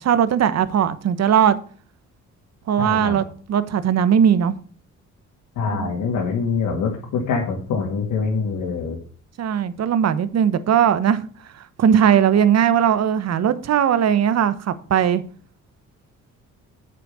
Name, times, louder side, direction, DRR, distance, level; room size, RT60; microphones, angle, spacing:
voice 1, 0.0-1.5 2.7-4.5 5.7-5.9 9.4-11.2 11.8-15.2, right 8 dB, 60° right, 1.1 m, -18 dB
voice 2, 2.8-3.2 5.6-9.0, left 5 dB, 85° left, 2.5 m, -24 dB
8.5 x 6.7 x 5.5 m
cardioid pair, 90°, 30 cm